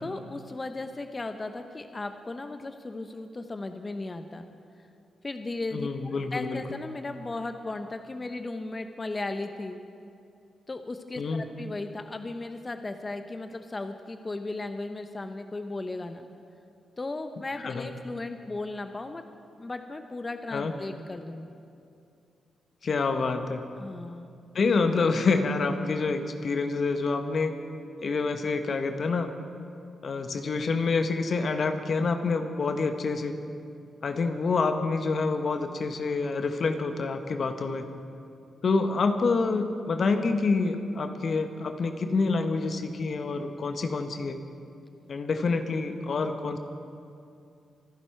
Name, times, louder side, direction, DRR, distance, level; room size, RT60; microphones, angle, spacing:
voice 1, 0.0-4.5 5.2-5.9 6.3-9.8 10.7-16.3 17.0-19.2 19.6-21.5 23.8-24.3, left 2 dB, 35° left, 7 dB, 1.0 m, -36 dB
voice 2, 5.7-6.6 11.2-11.4 17.6-17.9 20.5-20.7 22.8-23.6 24.5-27.5 28.0-29.3 30.0-33.3 34.0-37.8 38.6-44.4 45.1-46.6, left 4 dB, 60° left, 7 dB, 1.1 m, -27 dB
25.0 x 11.0 x 4.6 m, 2.5 s
hypercardioid pair, 40°, 0 cm